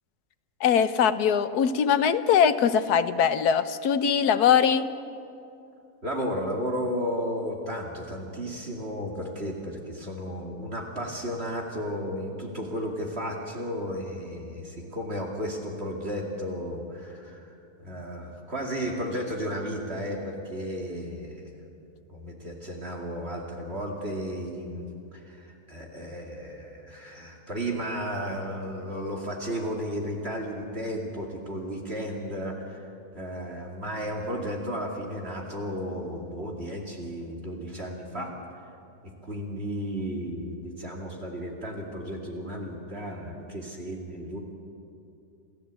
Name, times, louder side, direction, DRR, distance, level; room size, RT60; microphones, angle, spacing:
voice 1, 0.6-4.9, left 7 dB, 90° left, 12 dB, 1.4 m, -22 dB
voice 2, 6.0-17.5 17.8-21.5 22.1-38.3 39.0-44.4, equal, 40° right, 0 dB, 2.7 m, -34 dB
28.0 x 15.5 x 8.2 m, 2.6 s
omnidirectional pair, 1.6 m